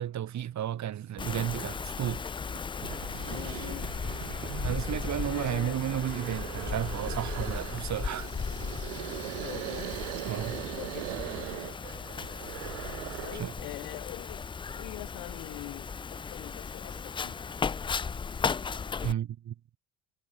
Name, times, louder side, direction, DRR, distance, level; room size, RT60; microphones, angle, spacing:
voice 1, 0.0-2.2 4.6-8.3 10.3-10.6 13.3-13.5 19.0-19.5, right 11 dB, 50° right, 5.0 m, -33 dB
Wind, 1.2-19.1, left 5 dB, 15° left, 0.4 m, -36 dB
sound 1, 2.2-11.3, right 6 dB, 30° right, 4.2 m, -55 dB
sound 2, 2.4-2.5 2.8-13.6, right 26 dB, 85° right, 2.1 m, -40 dB
voice 2, 3.3-3.9 5.3-5.8 9.3-11.8 13.2-14.5 14.7-17.4, left 30 dB, 75° left, 7.2 m, -44 dB
supercardioid pair, 85°, 36 cm